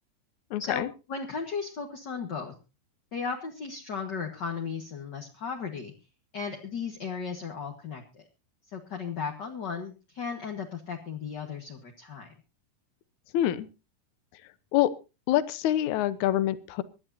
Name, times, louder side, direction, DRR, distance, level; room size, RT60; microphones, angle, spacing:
voice 1, 0.5-0.9 13.3-13.7 14.7-14.9 15.3-16.8, left 13 dB, 70° left, 14 dB, 2.2 m, -25 dB
voice 2, 1.1-2.5 3.1-5.9 6.3-8.2 8.7-12.3, left 5 dB, 45° left, 2 dB, 1.7 m, -35 dB
25.0 x 11.0 x 2.8 m, 0.30 s
omnidirectional pair, 3.8 m